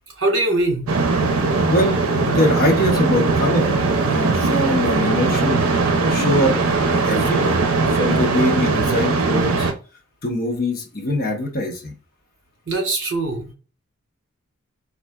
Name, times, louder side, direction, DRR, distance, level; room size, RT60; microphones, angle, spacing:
voice 1, 0.2-0.9 12.7-13.5, right 2 dB, 60° right, 1 dB, 1.4 m, -22 dB
sound 1, 0.9-9.7, right 3 dB, 85° right, 0.6 m, -19 dB
voice 2, 1.7-3.7 4.0-5.7 6.1-6.5 6.9-7.6 7.9-9.7 10.2-11.9, left 1 dB, 45° left, 1 dB, 0.8 m, -22 dB
4.3 x 2.4 x 2.3 m, 0.36 s
head